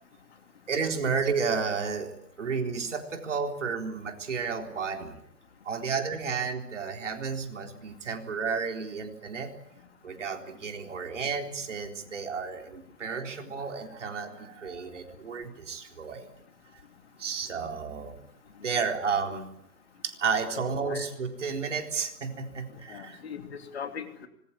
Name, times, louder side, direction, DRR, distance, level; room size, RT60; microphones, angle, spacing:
voice 1, 0.7-5.2 5.6-9.5 10.0-16.3 17.2-18.2 18.6-19.5 20.0-23.2, right 5 dB, 50° right, 4 dB, 4.0 m, -32 dB
voice 2, 20.5-21.1 22.9-24.3, left 7 dB, 40° left, 6 dB, 3.0 m, -39 dB
25.5 x 21.0 x 8.6 m, 0.74 s
hypercardioid pair, 155°, 47 cm